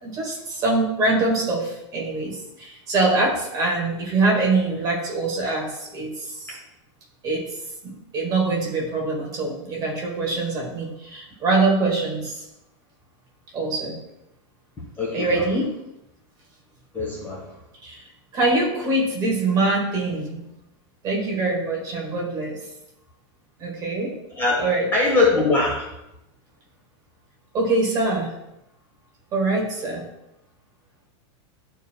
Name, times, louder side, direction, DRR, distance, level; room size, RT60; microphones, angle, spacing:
voice 1, 0.0-6.6 7.2-7.4 7.8-12.4 13.5-13.9 15.1-15.7 17.8-18.0 18.3-20.4 21.0-22.6 23.6-24.1 24.6-24.9 27.5-28.3 29.3-30.0, right 2 dB, 25° right, -2 dB, 1.8 m, -24 dB
voice 2, 15.0-15.3 16.9-17.4 24.4-24.6 24.9-25.8, left 3 dB, 15° left, -3 dB, 1.3 m, -21 dB
11.0 x 4.6 x 2.2 m, 0.89 s
supercardioid pair, 165°, 15 cm